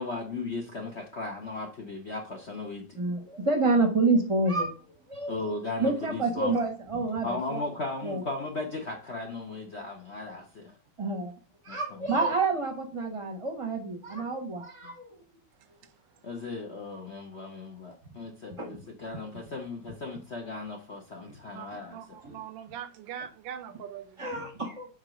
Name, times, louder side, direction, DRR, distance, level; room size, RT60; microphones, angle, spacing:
voice 1, 0.0-3.0 5.3-6.5 7.2-10.8 11.7-12.2 14.2-14.3 14.8-14.9 16.2-22.0, left 3 dB, 50° left, 0.8 m, -36 dB
voice 2, 3.0-4.7 5.1-5.4 5.8-7.6 8.0-8.2 11.0-11.3 11.6-15.2 18.6-18.8 21.3-21.4 22.2-22.4 24.2-24.9, right 3 dB, 20° right, 0.8 m, -28 dB
voice 3, 21.5-24.2, right 9 dB, 75° right, 1.3 m, -42 dB
4.8 x 4.5 x 6.0 m
omnidirectional pair, 2.2 m